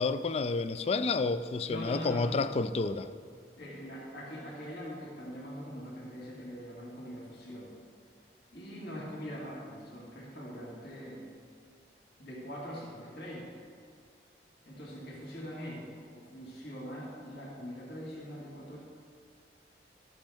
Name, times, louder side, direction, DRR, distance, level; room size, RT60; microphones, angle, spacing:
voice 1, 0.0-3.1, left 3 dB, 35° left, 12 dB, 0.3 m, -30 dB
voice 2, 1.6-2.6 3.6-7.7 8.5-11.3 12.2-13.5 14.6-18.8, equal, 65° left, -5 dB, 2.2 m, -42 dB
13.0 x 7.7 x 3.5 m, 2.3 s
head